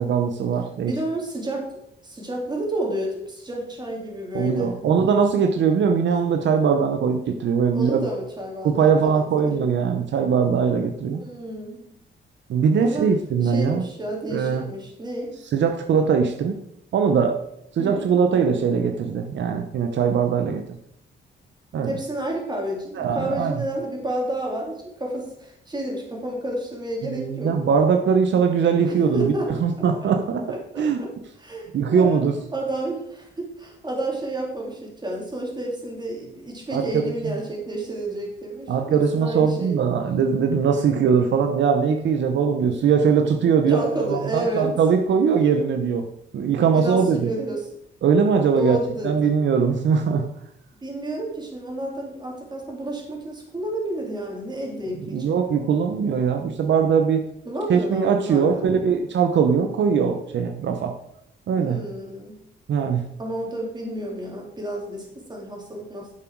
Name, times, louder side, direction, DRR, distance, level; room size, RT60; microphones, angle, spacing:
voice 1, 0.0-0.9 4.3-8.0 8.6-11.2 12.5-13.9 14.3-14.6 15.5-16.6 16.9-17.4 17.7-20.8 21.7-21.9 23.0-23.5 27.0-29.3 29.6-30.5 30.8-31.0 31.7-32.4 36.7-37.3 38.7-46.1 46.3-47.3 48.0-48.8 49.0-50.3 55.1-57.2 57.7-61.0 61.5-61.8 62.7-63.1, right 6 dB, 70° right, 5 dB, 0.9 m, -21 dB
voice 2, 0.8-1.8 2.0-4.8 7.7-9.6 11.2-11.8 12.8-13.1 13.4-15.4 17.8-18.1 21.8-27.6 28.8-29.7 30.0-30.1 30.5-31.1 31.4-32.3 32.5-39.8 43.7-44.7 46.7-47.7 48.6-49.3 50.8-55.4 57.4-58.7 61.6-62.4 63.2-66.1, right 1 dB, 20° right, -1 dB, 3.0 m, -30 dB
10.0 x 7.6 x 4.7 m, 0.78 s
cardioid pair, 125°, 19 cm